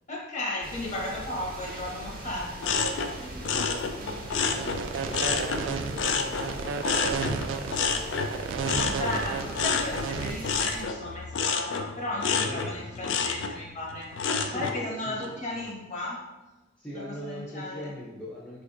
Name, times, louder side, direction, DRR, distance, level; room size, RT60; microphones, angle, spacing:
voice 1, 0.1-2.8 8.8-14.1 14.5-16.2 17.2-17.9, left 1 dB, 40° left, -3 dB, 0.8 m, -35 dB
sound 1, 0.6-10.8, right 2 dB, 50° right, 0.6 m, -41 dB
sound 2, 2.6-5.6 6.0-14.8 15.2-15.7, left 5 dB, 75° left, 0.3 m, -29 dB
voice 2, 3.1-9.7 12.4-13.4 14.3-15.4 16.8-18.6, left 1 dB, 5° left, -6 dB, 0.5 m, -43 dB
sound 3, 4.5-10.3, right 5 dB, 90° right, 0.3 m, -32 dB
4.5 x 2.5 x 2.5 m, 1.1 s
head